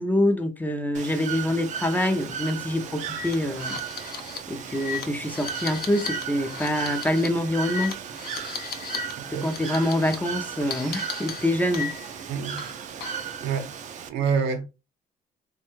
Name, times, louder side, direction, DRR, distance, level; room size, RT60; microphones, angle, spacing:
voice 1, 0.0-3.8 4.5-7.9 9.4-11.9, left 1 dB, 10° left, 0.4 m, -25 dB
Bird / Water, 0.9-14.1, right 8 dB, 45° right, 0.4 m, -36 dB
sound 1, 1.9-2.1 2.4-2.5 3.0-9.1 9.4-10.1 10.7-12.2 12.6-13.3, left 7 dB, 65° left, 0.7 m, -36 dB
voice 2, 12.3-12.6 13.4-13.7 14.1-14.6, right 6 dB, 90° right, 0.7 m, -26 dB
2.6 x 2.2 x 3.0 m
cardioid pair, 110°, 17 cm